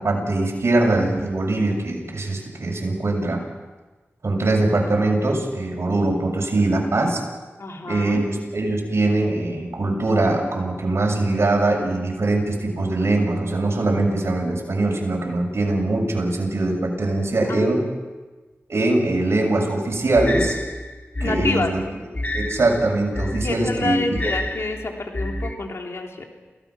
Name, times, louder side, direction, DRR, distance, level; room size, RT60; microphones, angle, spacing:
voice 1, 0.0-3.4 4.2-7.2 7.9-17.8 18.7-20.6 21.2-21.8 22.3-24.4, right 2 dB, 70° right, 0 dB, 7.0 m, -22 dB
voice 2, 7.6-8.2 17.5-17.7 21.2-21.7 23.4-26.3, left 3 dB, 70° left, 1 dB, 3.4 m, -28 dB
sound 1, 20.1-25.5, left 1 dB, 40° left, 3.0 m, -29 dB
28.5 x 18.0 x 6.0 m, 1.3 s
cardioid pair, 50°, 5 cm